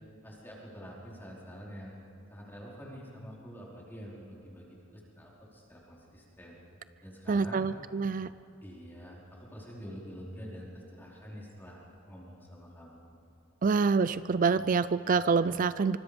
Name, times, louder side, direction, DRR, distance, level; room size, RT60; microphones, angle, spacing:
voice 1, 0.2-1.9 2.3-6.6 7.0-7.6 8.6-13.1, equal, 10° left, -4 dB, 4.8 m, -47 dB
voice 2, 7.3-8.3 13.6-16.0, right 5 dB, 40° right, 15 dB, 0.4 m, -26 dB
25.0 x 24.5 x 5.3 m, 2.9 s
head